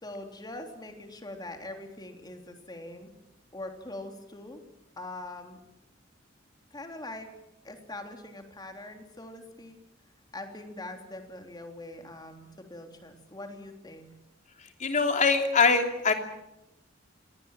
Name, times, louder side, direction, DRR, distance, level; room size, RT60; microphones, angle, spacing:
voice 1, 0.0-3.1 3.5-4.6 5.0-5.6 6.7-7.3 7.6-9.8 10.3-14.1, left 2 dB, 20° left, 4 dB, 3.5 m, -42 dB
voice 2, 14.8-16.1, left 4 dB, 40° left, 4 dB, 3.1 m, -23 dB
27.0 x 19.5 x 7.5 m, 0.87 s
head